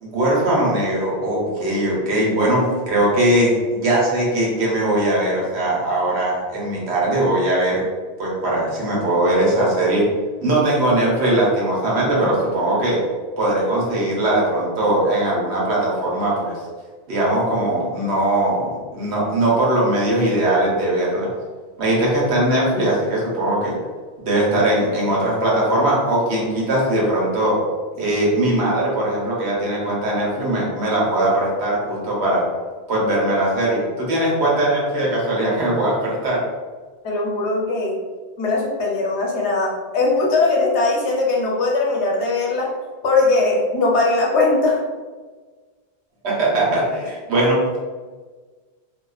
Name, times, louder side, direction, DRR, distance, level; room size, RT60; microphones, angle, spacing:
voice 1, 0.0-7.8 8.2-10.0 10.4-13.0 13.4-16.5 17.1-21.3 21.8-23.8 24.2-27.6 28.0-32.4 32.9-36.4 46.2-47.8, right 1 dB, 80° right, -5 dB, 1.1 m, -20 dB
voice 2, 37.0-38.0 38.4-42.7 43.0-44.8, left 3 dB, 90° left, -1 dB, 0.9 m, -20 dB
2.3 x 2.3 x 2.3 m, 1.4 s
omnidirectional pair, 1.1 m